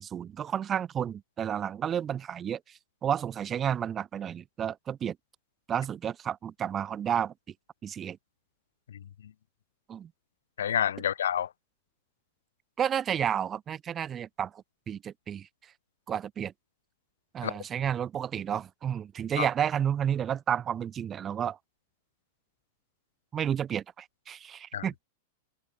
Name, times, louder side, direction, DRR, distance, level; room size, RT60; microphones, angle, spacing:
voice 1, 0.0-2.6 3.0-5.2 5.7-7.3 7.8-8.2 9.9-10.1 12.8-15.5 16.1-16.5 17.3-21.6 23.3-25.0, right 9 dB, 25° right, 4.2 m, -31 dB
voice 2, 10.6-11.5 17.4-17.5 19.4-19.5 24.7-25.0, left 9 dB, 75° left, 0.5 m, -28 dB
hypercardioid pair, 100°, 0 cm